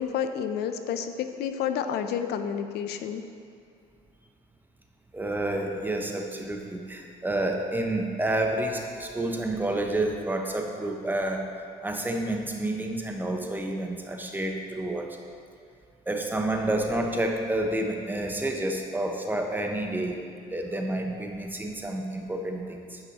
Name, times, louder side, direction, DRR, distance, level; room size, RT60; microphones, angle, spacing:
voice 1, 0.0-3.2, left 8 dB, 75° left, 8 dB, 0.5 m, -30 dB
voice 2, 5.1-11.4 11.8-15.2 16.1-20.2 20.5-23.0, right 1 dB, 10° right, 2 dB, 0.7 m, -29 dB
9.6 x 5.4 x 3.0 m, 2.4 s
cardioid pair, 110°, 17 cm